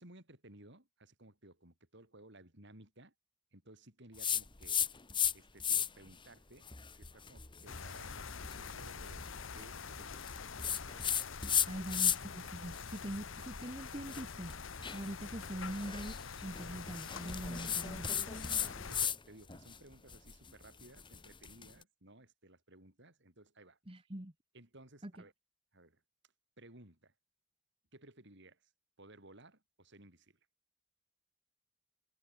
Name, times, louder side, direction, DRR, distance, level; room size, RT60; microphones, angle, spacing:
voice 1, 0.0-3.1 3.5-4.8 5.3-10.3 14.8-15.0 18.5-24.1 24.5-25.3 25.7-26.0 26.6-27.1 27.9-28.6 29.0-30.3, right 1 dB, 60° right, 5.8 m, -58 dB
sound 1, 4.2-5.3 5.6-6.1 6.6-12.4 12.7-19.2 19.5-21.7, left 8 dB, 25° left, 1.6 m, -36 dB
sound 2, 7.7-19.1, left 5 dB, 70° left, 1.0 m, -46 dB
voice 2, 11.7-14.6 14.9-16.1 16.4-18.2 23.9-24.3 25.0-25.1, right 1 dB, 25° right, 1.8 m, -43 dB
head